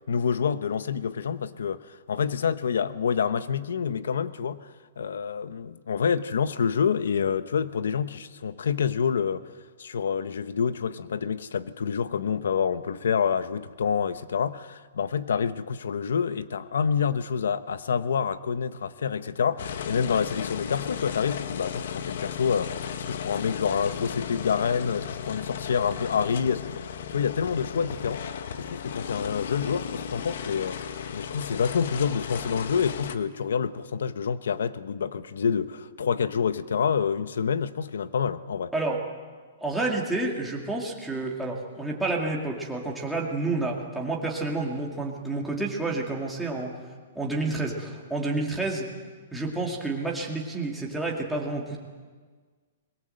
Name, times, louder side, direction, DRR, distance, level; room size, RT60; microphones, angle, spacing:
voice 1, 0.1-1.8 2.1-4.6 5.0-9.4 9.8-28.2 28.6-30.8 31.1-38.7, left 6 dB, 90° left, 13 dB, 1.1 m, -27 dB
sound 1, 19.6-33.1, left 8 dB, 50° left, 1.2 m, -35 dB
voice 2, 39.6-46.8 47.1-48.9 49.3-51.8, right 2 dB, ahead, -3 dB, 2.2 m, -29 dB
23.0 x 22.0 x 7.8 m, 1.5 s
hypercardioid pair, 180°, 0 cm